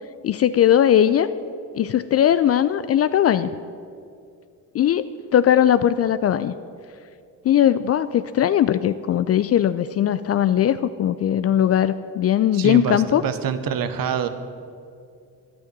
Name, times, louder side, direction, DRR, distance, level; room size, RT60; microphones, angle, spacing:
voice 1, 0.2-1.3 1.7-3.5 4.7-6.5 7.4-13.2, left 10 dB, 35° left, 14 dB, 0.4 m, -19 dB
voice 2, 12.5-14.3, right 8 dB, 50° right, 11 dB, 1.0 m, -25 dB
11.5 x 8.7 x 7.9 m, 2.4 s
figure-of-eight pair, 45°, 45 cm